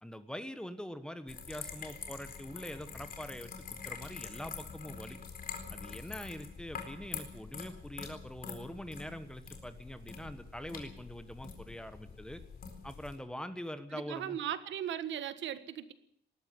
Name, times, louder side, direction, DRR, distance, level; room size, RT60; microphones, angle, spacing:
voice 1, 0.0-5.2 5.7-12.4 12.8-14.4, equal, 5° left, 10 dB, 1.2 m, -44 dB
baby birth showerdrain, 1.3-13.2, left 5 dB, 50° left, 4.3 m, -45 dB
voice 2, 13.9-15.9, right 10 dB, 90° right, 12 dB, 1.6 m, -38 dB
20.0 x 14.0 x 9.6 m, 0.72 s
wide cardioid pair, 170°, 19 cm